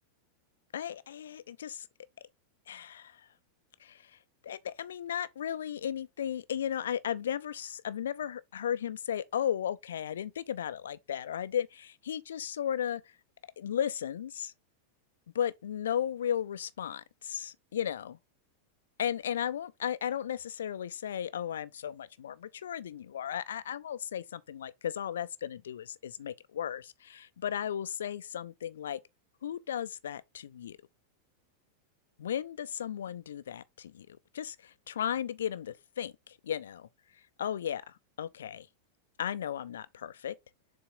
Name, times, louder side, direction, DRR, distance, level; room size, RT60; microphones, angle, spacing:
voice 1, 0.7-1.9 2.7-3.3 3.8-4.2 4.4-13.2 13.6-14.5 15.3-18.2 19.0-29.0 29.4-30.8 32.2-38.7 39.2-40.3, left 9 dB, 65° left, 0.5 m, -35 dB
7.0 x 3.8 x 3.7 m
figure-of-eight pair, 90°, 0 cm